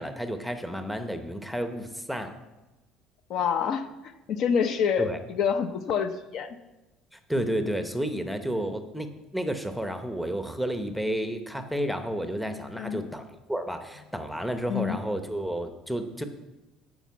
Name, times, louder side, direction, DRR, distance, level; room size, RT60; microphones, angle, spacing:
voice 1, 0.0-2.3 5.0-5.2 7.1-16.2, equal, ahead, 7 dB, 0.8 m, -31 dB
voice 2, 3.3-3.9 4.3-6.6 12.8-13.0 14.7-15.0, left 7 dB, 50° left, 9 dB, 0.7 m, -27 dB
12.0 x 5.1 x 8.2 m, 1.1 s
cardioid pair, 155°, 0 cm